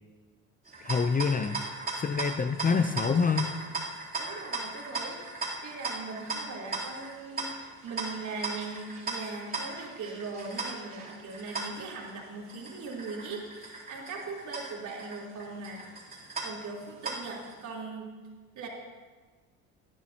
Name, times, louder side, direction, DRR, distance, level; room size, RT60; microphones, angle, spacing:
sound 1, 0.6-17.5, right 3 dB, 25° right, 3.4 m, -38 dB
voice 1, 0.8-1.6 2.0-3.5, left 5 dB, 25° left, 9 dB, 0.6 m, -26 dB
voice 2, 4.2-5.2 5.6-15.8 16.4-18.1 18.6-18.7, right 4 dB, 50° right, -3 dB, 3.7 m, -40 dB
19.0 x 11.5 x 2.9 m, 1.4 s
supercardioid pair, 85°, 37 cm